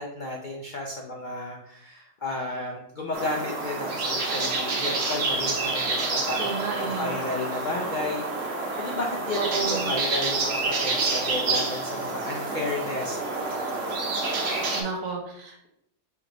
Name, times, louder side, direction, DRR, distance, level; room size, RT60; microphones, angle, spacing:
voice 1, 0.0-8.2 8.8-9.4 9.7-13.6, left 2 dB, 90° left, 0 dB, 0.4 m, -33 dB
sound 1, 3.1-14.8, right 3 dB, 60° right, 1.1 m, -28 dB
voice 2, 6.4-7.2 9.3-9.9 14.7-15.7, right 5 dB, 75° right, 1 dB, 1.4 m, -31 dB
5.0 x 3.4 x 2.9 m, 0.75 s
omnidirectional pair, 1.7 m